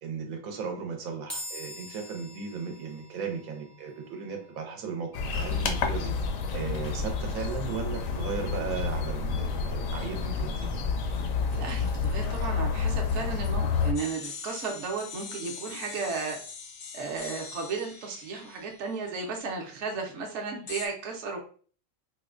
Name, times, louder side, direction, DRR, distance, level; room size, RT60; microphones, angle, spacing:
voice 1, 0.0-5.1 5.3-6.1 6.5-10.8, right 6 dB, 90° right, 3 dB, 1.2 m, -36 dB
sound 1, 1.3-14.6, left 1 dB, ahead, 0.4 m, -50 dB
sound 2, 5.1-13.9, left 5 dB, 80° left, 1.0 m, -29 dB
voice 2, 11.5-16.4 16.9-21.4, right 4 dB, 65° right, 2 dB, 1.0 m, -34 dB
sound 3, 13.9-19.6 20.7-20.9, left 5 dB, 60° left, 0.6 m, -42 dB
4.5 x 2.1 x 2.4 m, 0.42 s
omnidirectional pair, 1.4 m